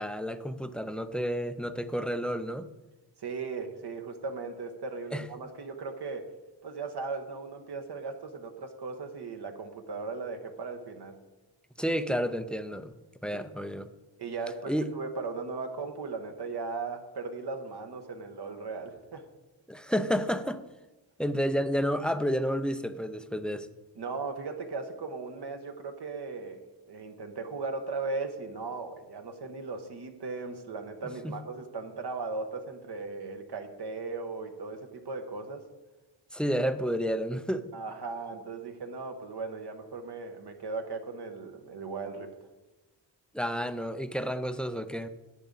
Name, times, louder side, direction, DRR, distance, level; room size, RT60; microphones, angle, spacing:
voice 1, 0.0-2.7 5.1-5.3 11.8-12.9 13.2-13.9 14.7-14.9 19.7-20.6 21.2-23.7 31.2-31.4 36.3-37.7 43.3-45.1, equal, ahead, 11 dB, 0.4 m, -30 dB
voice 2, 3.2-6.3 6.6-11.2 13.3-13.6 14.2-19.2 24.0-26.6 26.8-35.6 37.7-42.3, right 4 dB, 60° right, 5 dB, 1.2 m, -37 dB
11.0 x 8.3 x 4.0 m, 1.1 s
wide cardioid pair, 115°, 45 cm